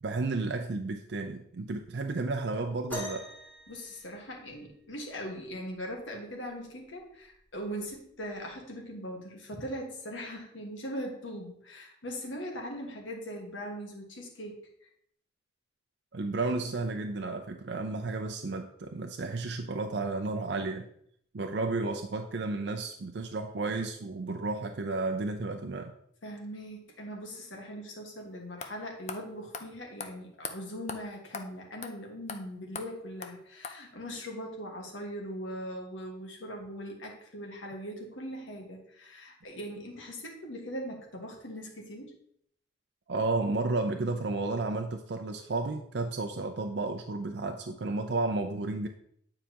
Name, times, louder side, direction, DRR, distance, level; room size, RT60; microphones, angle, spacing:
voice 1, 0.0-3.3 16.1-20.9 21.3-25.9 43.1-48.9, right 3 dB, 65° right, 4 dB, 0.5 m, -32 dB
sound 1, 2.9-4.8 6.5-6.6 7.3-7.6 8.5-8.6, left 1 dB, 10° left, 1.6 m, -42 dB
voice 2, 3.7-14.9 26.2-42.1, equal, 90° left, 1 dB, 1.6 m, -40 dB
sound 2, 28.2-28.3 28.6-28.7 29.1-29.2 29.5-29.7 30.0-30.1 30.4-30.5 30.9-31.0 31.3-31.5 31.8-31.9 32.3-32.4 32.8-32.9 33.2-33.3 33.6-33.8, left 5 dB, 35° left, 0.5 m, -38 dB
9.2 x 4.8 x 2.9 m, 0.68 s
head